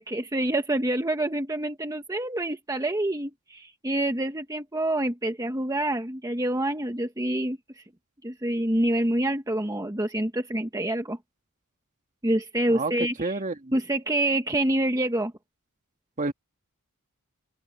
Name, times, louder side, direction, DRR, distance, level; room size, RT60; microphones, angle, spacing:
voice 1, 0.0-7.8 8.2-11.2 12.2-13.4 13.7-15.3, right 1 dB, 15° right, 1.2 m, -27 dB
voice 2, 13.2-13.7 16.2-16.3, right 3 dB, 35° right, 1.7 m, -29 dB
open air
head